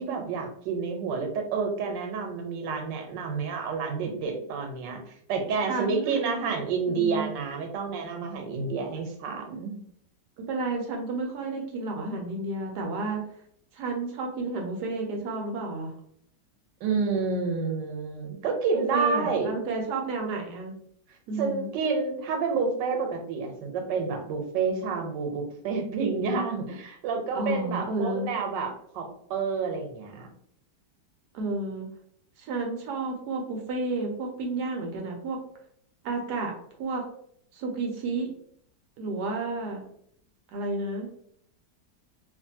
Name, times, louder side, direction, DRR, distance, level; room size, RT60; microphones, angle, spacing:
voice 1, 0.0-9.7 16.8-19.5 21.4-30.3, right 5 dB, 90° right, 3 dB, 1.3 m, -29 dB
voice 2, 5.6-6.2 6.9-7.3 10.4-13.2 13.7-15.9 18.7-20.7 21.3-21.7 27.3-28.3 31.3-31.9 32.4-35.4 36.0-36.5 36.8-37.0 37.5-38.3 39.0-39.8 40.5-41.1, right 3 dB, 75° right, 2 dB, 1.1 m, -31 dB
2.9 x 2.5 x 2.6 m, 0.66 s
omnidirectional pair, 1.9 m